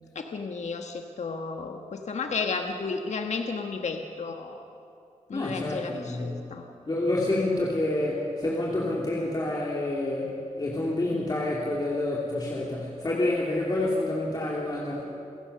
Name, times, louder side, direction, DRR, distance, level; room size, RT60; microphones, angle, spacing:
voice 1, 0.1-4.7 5.3-6.6 11.1-11.3, left 4 dB, 60° left, 4 dB, 1.3 m, -33 dB
voice 2, 5.3-6.4 6.9-15.0, left 2 dB, 30° left, -4 dB, 2.9 m, -28 dB
28.5 x 17.0 x 6.8 m, 2.7 s
wide cardioid pair, 130°, 13 cm